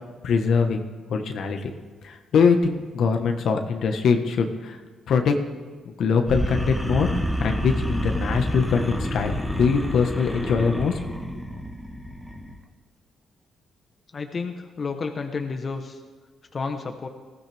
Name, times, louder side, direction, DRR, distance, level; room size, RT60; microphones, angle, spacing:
voice 1, 0.2-0.8 1.1-1.7 2.0-4.8 5.1-5.4 6.0-7.1 7.4-11.2, left 5 dB, 65° left, 5 dB, 1.4 m, -22 dB
sound 1, 6.3-12.5, equal, ahead, 1.5 m, -28 dB
voice 2, 14.1-16.0 16.5-17.1, left 4 dB, 40° left, 5 dB, 1.2 m, -31 dB
20.0 x 15.5 x 3.6 m, 1.4 s
cardioid pair, 90°, 0 cm